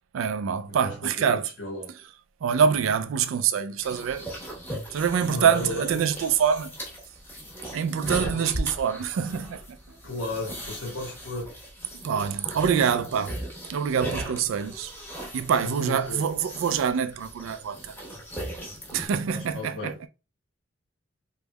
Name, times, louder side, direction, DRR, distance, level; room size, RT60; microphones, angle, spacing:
voice 1, 0.1-1.5 2.4-4.3 4.9-6.7 7.7-9.6 12.0-13.4 13.7-14.9 15.3-18.0 18.9-19.9, right 7 dB, 90° right, 0.3 m, -25 dB
voice 2, 0.8-1.9 3.7-3.8 5.2-6.1 8.1-8.5 10.0-11.5 15.6-16.2 19.3-20.1, left 2 dB, 80° left, 1.2 m, -35 dB
sound 1, 3.8-19.1, right 1 dB, 10° left, 1.0 m, -38 dB
3.4 x 3.1 x 2.2 m
head